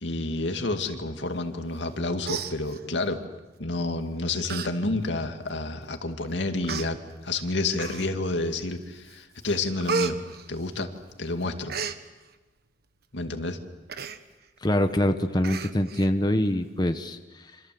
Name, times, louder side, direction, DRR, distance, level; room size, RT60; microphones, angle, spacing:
voice 1, 0.0-3.2 3.6-7.0 7.2-10.2 10.5-10.9 11.2-11.7 13.1-13.6, left 2 dB, 75° left, 6 dB, 2.3 m, -29 dB
Human voice, 1.8-1.9 2.2-3.1 3.9-4.0 4.4-4.7 5.1-5.2 6.0-6.1 6.6-6.9 7.7-8.3 8.8-9.1 9.4-11.1 11.4-12.0 13.9-14.2 14.6-14.7 14.9-15.1 15.4-16.1 16.4-16.5, right 5 dB, 60° right, 1.4 m, -33 dB
voice 2, 14.6-17.6, left 1 dB, 25° left, 7 dB, 1.1 m, -25 dB
28.5 x 26.0 x 7.8 m, 1.2 s
head